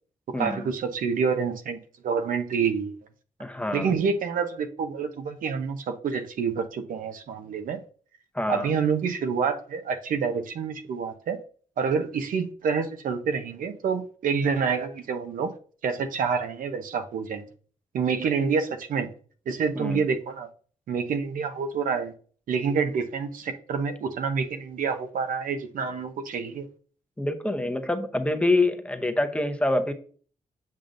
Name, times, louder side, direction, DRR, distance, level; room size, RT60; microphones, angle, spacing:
voice 1, 0.4-1.8 2.0-2.9 3.7-7.8 8.5-11.4 11.8-15.5 15.8-17.4 17.9-19.1 19.5-20.5 20.9-22.1 22.5-26.7, right 6 dB, 80° right, 0.8 m, -27 dB
voice 2, 3.4-3.9 8.3-8.7 19.8-20.0 27.2-29.9, left 2 dB, 10° left, 0.7 m, -26 dB
7.6 x 5.2 x 2.5 m
cardioid pair, 105°, 14 cm